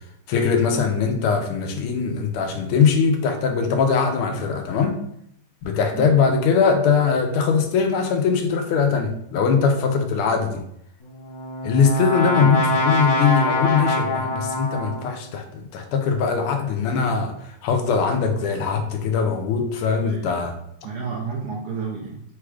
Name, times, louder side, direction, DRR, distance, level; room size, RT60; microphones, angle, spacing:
voice 1, 0.3-5.0 5.6-10.6 11.6-20.5, left 5 dB, 85° left, 5 dB, 1.5 m, -21 dB
Brass instrument, 11.0-15.2, left 2 dB, 55° left, 1.1 m, -24 dB
voice 2, 20.0-20.4 20.8-22.2, right 5 dB, 80° right, -1 dB, 0.8 m, -31 dB
4.1 x 2.3 x 4.6 m, 0.73 s
omnidirectional pair, 2.4 m